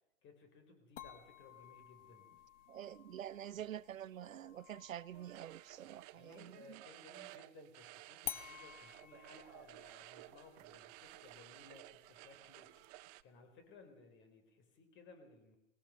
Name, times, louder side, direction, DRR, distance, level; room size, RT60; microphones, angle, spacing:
voice 1, 0.2-2.3 6.1-15.6, left 3 dB, 30° left, 4.7 m, -60 dB
sound 1, 1.0-6.6 8.2-13.2, left 11 dB, 65° left, 1.4 m, -53 dB
voice 2, 2.7-6.8, right 11 dB, 90° right, 0.6 m, -47 dB
sound 2, 5.1-13.2, right 19 dB, 30° right, 0.7 m, -56 dB
20.5 x 18.5 x 6.7 m
hypercardioid pair, 125°, 39 cm